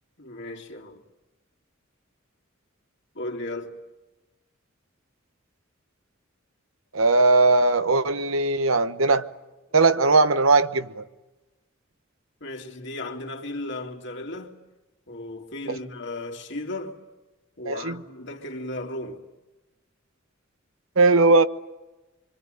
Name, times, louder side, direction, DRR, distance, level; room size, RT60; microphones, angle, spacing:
voice 1, 0.2-1.0 3.1-3.8 12.4-14.6 15.1-17.0 17.6-19.2, left 2 dB, 60° left, 2.9 m, -35 dB
voice 2, 6.9-9.2 9.7-11.0 15.7-15.8 17.6-18.0 21.0-21.4, right 3 dB, 80° right, 1.1 m, -19 dB
26.0 x 24.5 x 9.0 m
head